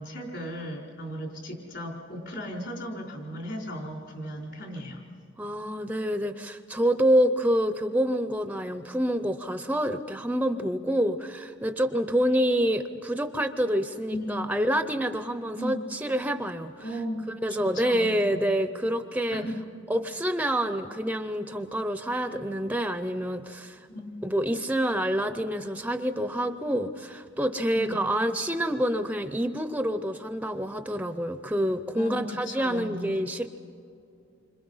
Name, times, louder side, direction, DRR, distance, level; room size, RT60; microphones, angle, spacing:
voice 1, 0.0-5.0 14.1-14.5 15.6-15.8 16.8-17.2 17.5-18.1 19.3-19.6 23.9-24.2 27.7-28.0 31.9-33.1, equal, 60° left, 1 dB, 4.5 m, -36 dB
voice 2, 5.4-16.9 17.4-19.4 19.9-23.8 24.2-33.5, equal, 10° right, 9 dB, 0.6 m, -27 dB
28.0 x 25.5 x 5.6 m, 2.5 s
head